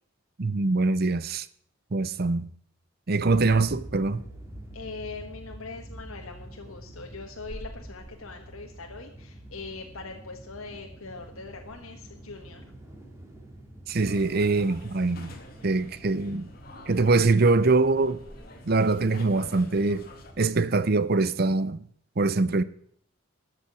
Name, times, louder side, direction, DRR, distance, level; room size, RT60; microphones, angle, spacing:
voice 1, 0.4-1.5 1.9-2.5 3.1-4.2 13.9-15.3 15.6-16.5 16.9-18.2 18.7-20.1 20.4-21.8 22.2-22.6, right 3 dB, 45° right, 0.7 m, -23 dB
sound 1, 3.2-20.6, right 1 dB, 15° right, 2.6 m, -46 dB
voice 2, 4.7-12.6, left 3 dB, 85° left, 1.5 m, -41 dB
sound 2, 13.9-20.3, left 2 dB, 45° left, 2.2 m, -49 dB
13.5 x 6.9 x 8.5 m
head